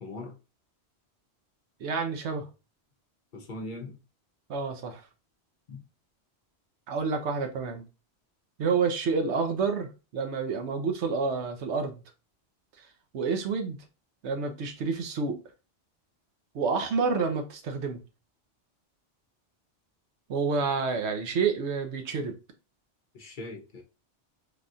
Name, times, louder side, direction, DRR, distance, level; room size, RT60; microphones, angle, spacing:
voice 1, 0.0-0.4 3.3-4.0 5.7-5.8 23.1-23.8, left 2 dB, 55° left, 0.7 m, -40 dB
voice 2, 1.8-2.5 4.5-5.0 6.9-7.8 8.6-9.9 10.1-12.0 13.1-13.8 14.2-15.4 16.5-18.0 20.3-22.3, right 5 dB, 80° right, 1.0 m, -28 dB
3.4 x 2.3 x 2.5 m
omnidirectional pair, 1.1 m